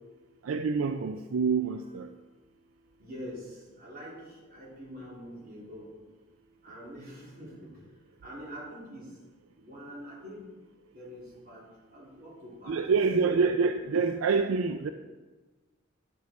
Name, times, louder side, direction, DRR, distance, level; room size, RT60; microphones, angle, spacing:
voice 1, 0.4-2.1 12.7-14.9, right 5 dB, 85° right, 0.4 m, -26 dB
voice 2, 3.0-6.0 6.6-7.8 8.2-9.2 9.6-10.6 10.9-12.8 13.2-13.3, equal, 50° right, 2.9 m, -45 dB
10.0 x 6.3 x 4.2 m
head